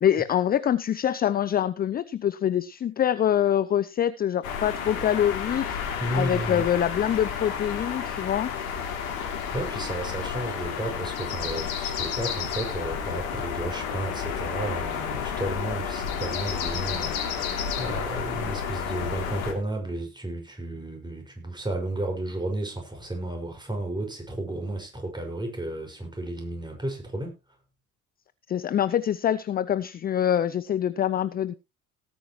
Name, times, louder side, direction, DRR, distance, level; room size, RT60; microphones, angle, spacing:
voice 1, 0.0-5.8 6.1-8.5 28.5-31.5, left 10 dB, 20° left, 17 dB, 0.5 m, -25 dB
sound 1, 4.4-19.5, left 7 dB, 70° left, 3.2 m, -31 dB
voice 2, 6.0-6.7 9.5-27.3, right 1 dB, 10° right, 2 dB, 6.0 m, -33 dB
18.0 x 9.2 x 3.1 m, 0.28 s
figure-of-eight pair, 60°, 42 cm